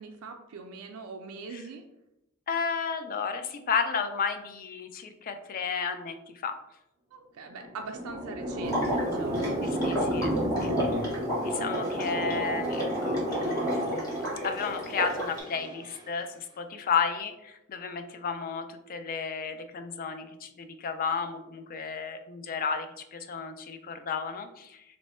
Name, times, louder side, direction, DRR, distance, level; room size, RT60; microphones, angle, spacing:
voice 1, 0.0-1.8 7.1-9.5, right 4 dB, 85° right, 3 dB, 0.4 m, -42 dB
voice 2, 2.5-6.2 6.4-6.6 9.6-10.3 10.6-10.7 11.4-24.8, left 6 dB, 40° left, 8 dB, 0.4 m, -33 dB
sound 1, 7.5-16.0, right 1 dB, 20° right, 0.4 m, -32 dB
Water / Liquid, 8.6-15.4, equal, 15° left, 1.1 m, -33 dB
3.1 x 2.0 x 4.2 m, 0.87 s
head